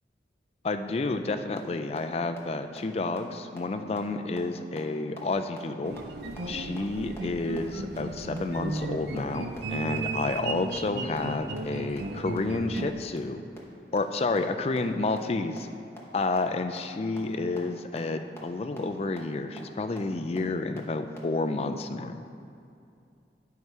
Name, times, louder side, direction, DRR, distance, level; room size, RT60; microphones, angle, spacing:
voice 1, 0.6-6.0 6.5-13.4 13.9-15.7 16.1-22.3, left 3 dB, 35° left, 7 dB, 0.4 m, -30 dB
sound 1, 1.6-1.7 2.0-2.1 2.4-2.5 2.8-2.9 3.2-3.3 3.6-3.7 4.0-4.1 4.4-4.5 4.8-4.9 5.2-5.3 5.6-5.7 6.0-6.1 6.4-6.5 6.8-6.9 7.2-7.3 7.6-7.7 8.0-8.1 8.4-8.5 8.8-8.9 9.2-9.3 9.6-9.7 10.0-10.1 10.4-10.5 10.7-10.8 11.1-11.2 11.5-11.6 11.9-12.0 12.3-12.4 12.7-12.8 13.2-13.3 13.6-13.7 14.0-14.1 14.4-14.5 14.8-14.9 15.2-15.3 15.6-15.7 16.0-16.1 16.4-16.5 16.8-16.9 17.2-17.3 17.6-17.7 18.0-18.1 18.4-18.5 18.8-18.9 19.2-19.3 19.6-19.7 20.0-20.1 20.4-20.5 20.8-20.9 21.2-21.3, equal, 15° left, 1.0 m, -44 dB
sound 2, 5.8-12.9, right 3 dB, 65° right, 0.5 m, -35 dB
9.4 x 4.7 x 5.5 m, 2.5 s
head